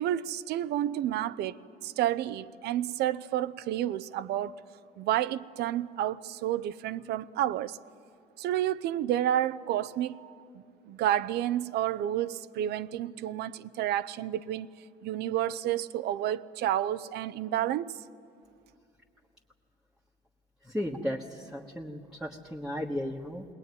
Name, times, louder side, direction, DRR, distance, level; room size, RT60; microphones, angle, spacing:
voice 1, 0.0-1.6 1.8-4.5 5.0-7.8 8.4-14.7 15.0-18.0, right 12 dB, 75° right, 0.6 m, -30 dB
voice 2, 20.6-23.5, equal, 5° right, 1.4 m, -35 dB
21.0 x 19.5 x 9.7 m
cardioid pair, 110°, 17 cm